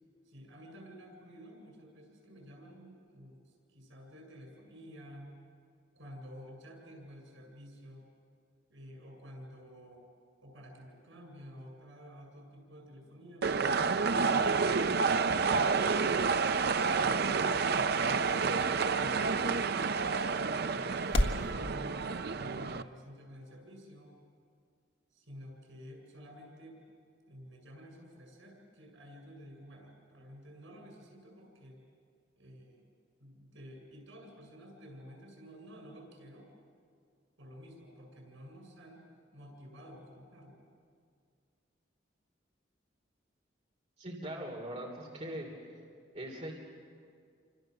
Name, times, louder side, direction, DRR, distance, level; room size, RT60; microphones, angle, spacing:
voice 1, 0.3-3.4 3.7-5.4 5.9-8.1 8.7-10.0 10.4-13.8 14.2-16.6 17.0-22.1 22.3-24.1 25.1-26.8 27.3-31.8 32.4-32.9 33.2-36.5 37.4-39.1 39.3-40.7, equal, 90° right, 2 dB, 7.6 m, -51 dB
sound 1, 13.4-22.8, right 5 dB, 55° right, 0.6 m, -29 dB
sound 2, 15.2-21.5, left 1 dB, 65° left, 1.7 m, -39 dB
voice 2, 44.0-45.5 46.1-46.5, right 1 dB, 35° right, -1 dB, 3.6 m, -40 dB
28.5 x 26.5 x 6.8 m, 2.2 s
head